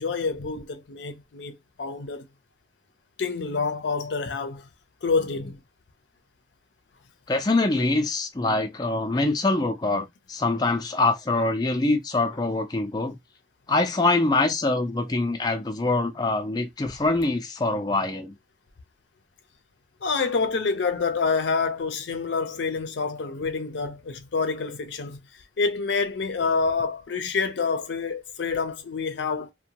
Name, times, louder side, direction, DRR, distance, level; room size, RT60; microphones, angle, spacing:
voice 1, 0.0-2.2 3.2-4.7 5.0-5.6 20.0-25.2 25.6-29.5, left 4 dB, 85° left, 0.5 m, -27 dB
voice 2, 7.3-13.2 13.7-18.3, left 2 dB, 20° left, 0.4 m, -24 dB
2.6 x 2.1 x 2.8 m
head